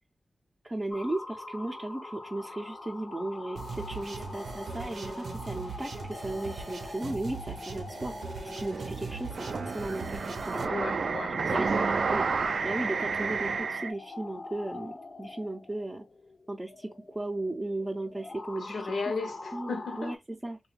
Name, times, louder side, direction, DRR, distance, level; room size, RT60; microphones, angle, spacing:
voice 1, 0.6-8.2 8.4-10.7 11.3-11.8 12.1-12.3 12.6-16.0 16.5-18.9 19.5-20.6, right 2 dB, 20° right, 0.5 m, -36 dB
sound 1, 0.9-20.2, left 2 dB, 50° left, 0.5 m, -45 dB
sound 2, 3.5-10.6, right 4 dB, 85° right, 0.7 m, -40 dB
sound 3, 8.7-13.9, right 4 dB, 70° right, 0.3 m, -30 dB
voice 2, 10.7-12.0 18.6-20.1, left 3 dB, 90° left, 0.8 m, -35 dB
3.2 x 2.2 x 3.1 m
wide cardioid pair, 120°, 0 cm